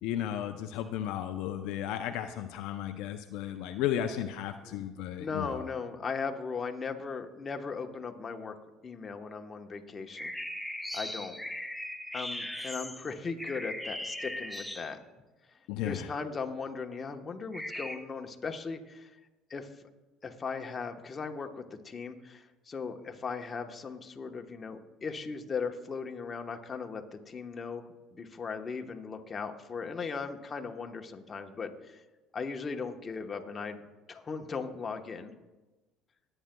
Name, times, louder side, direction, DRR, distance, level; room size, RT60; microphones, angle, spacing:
voice 1, 0.0-5.7 15.7-16.1, left 10 dB, 75° left, 7 dB, 0.5 m, -34 dB
voice 2, 5.2-8.5 8.8-10.3 10.9-11.4 12.1-15.0 15.8-19.1 19.5-19.7 20.2-32.0 32.3-33.8 34.1-35.3, left 5 dB, 30° left, 4 dB, 1.0 m, -38 dB
sound 1, 10.2-15.2 17.5-18.0, left 1 dB, ahead, 0.7 m, -38 dB
19.5 x 8.9 x 2.3 m, 1.1 s
supercardioid pair, 85°, 0 cm